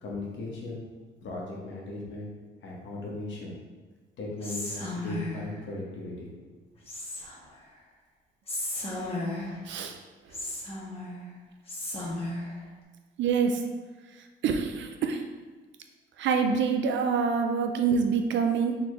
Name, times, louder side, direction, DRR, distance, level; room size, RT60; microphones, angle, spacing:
voice 1, 0.0-0.8 1.2-2.3 2.6-3.5 4.2-6.6, left 2 dB, 70° left, -3 dB, 1.4 m, -37 dB
Whispering, 4.4-5.5 6.9-7.5 8.5-9.6 10.3-11.2 11.7-12.5, left 1 dB, 30° left, 1.4 m, -34 dB
voice 2, 9.7-10.0 13.2-13.6 14.4-15.2 16.2-18.8, right 5 dB, 70° right, 5 dB, 0.6 m, -26 dB
4.0 x 3.9 x 3.3 m, 1.3 s
cardioid pair, 90°, 20 cm